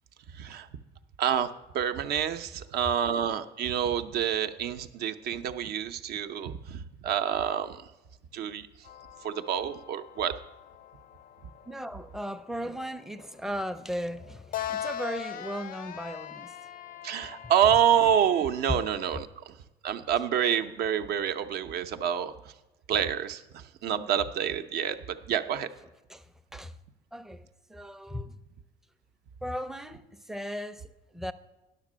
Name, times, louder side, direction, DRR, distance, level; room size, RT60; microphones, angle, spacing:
voice 1, 0.4-0.7 1.2-1.5 1.7-7.8 8.3-8.7 9.2-10.3 17.0-19.4 19.8-22.3 22.9-25.0 25.3-25.7, right 9 dB, 70° right, 0.6 m, -27 dB
sound 1, 8.8-19.2, left 10 dB, 55° left, 0.4 m, -42 dB
voice 2, 11.7-16.5 18.7-18.8 26.1-26.7 27.1-28.4 29.4-31.3, equal, ahead, 0.4 m, -37 dB
10.5 x 6.7 x 6.1 m
cardioid pair, 110°, 17 cm